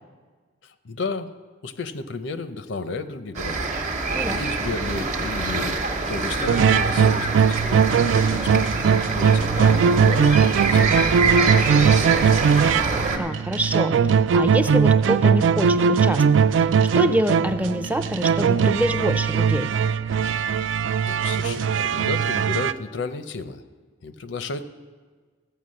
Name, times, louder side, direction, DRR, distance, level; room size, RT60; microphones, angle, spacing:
voice 1, 0.6-1.3 1.6-7.9 8.3-12.3 21.0-23.6 24.0-24.7, left 3 dB, 80° left, 11 dB, 0.6 m, -33 dB
sound 1, 3.3-13.2, right 3 dB, 40° right, 1.0 m, -25 dB
Fight loop, 6.5-22.7, right 6 dB, 90° right, 0.3 m, -20 dB
voice 2, 13.2-13.9 14.3-16.4 16.9-19.7, right 1 dB, 10° right, 9 dB, 0.4 m, -25 dB
14.5 x 5.8 x 7.6 m, 1.4 s
head